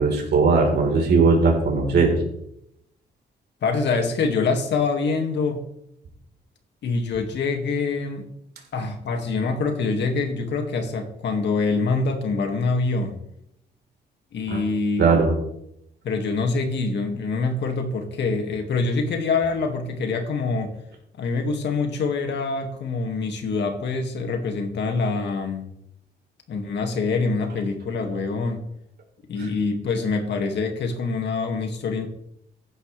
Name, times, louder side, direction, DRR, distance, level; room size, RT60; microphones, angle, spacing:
voice 1, 0.0-2.2 14.5-14.6 15.0-15.3 29.4-29.5, right 4 dB, 65° right, 1 dB, 4.2 m, -19 dB
voice 2, 3.6-5.6 6.8-8.3 8.7-13.2 14.3-15.2 16.0-20.8 21.2-25.7 26.5-28.7 29.3-32.1, left 4 dB, 70° left, 4 dB, 2.2 m, -25 dB
15.0 x 10.5 x 3.4 m, 0.78 s
cardioid pair, 120°, 18 cm